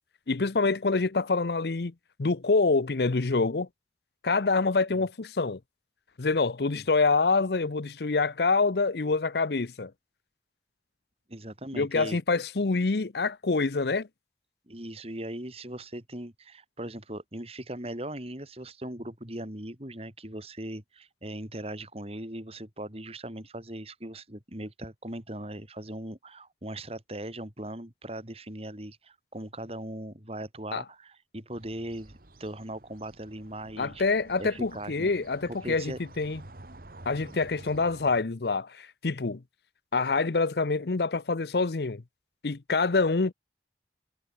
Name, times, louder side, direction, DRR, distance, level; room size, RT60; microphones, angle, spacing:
voice 1, 0.3-1.9 2.2-3.7 4.2-5.6 6.2-9.9 11.7-14.1 30.7-30.8 33.8-36.4 37.1-39.4 39.9-42.0 42.4-43.3, left 3 dB, 65° left, 0.7 m, -26 dB
voice 2, 11.3-12.2 14.7-34.0 34.4-35.1 35.5-36.0, right 1 dB, 35° right, 4.3 m, -39 dB
sound 1, 31.5-38.2, right 2 dB, 55° right, 1.8 m, -50 dB
head